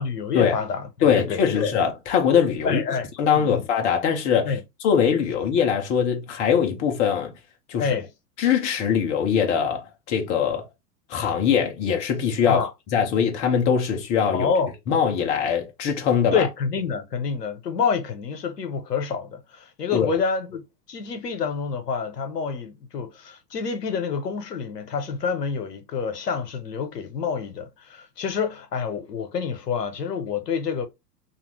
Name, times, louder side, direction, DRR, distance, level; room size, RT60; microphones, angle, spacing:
voice 1, 0.0-1.7 2.6-3.1 3.3-3.6 4.5-4.6 7.8-8.1 12.5-12.7 14.3-14.7 16.3-30.9, left 5 dB, 80° left, 0.8 m, -27 dB
voice 2, 1.0-2.8 3.2-4.5 4.8-7.3 7.7-7.9 8.4-10.6 11.1-12.6 12.9-14.5 14.9-16.5 19.9-20.1, left 7 dB, 15° left, 0.4 m, -22 dB
2.7 x 2.3 x 3.1 m
figure-of-eight pair, 90°, 47 cm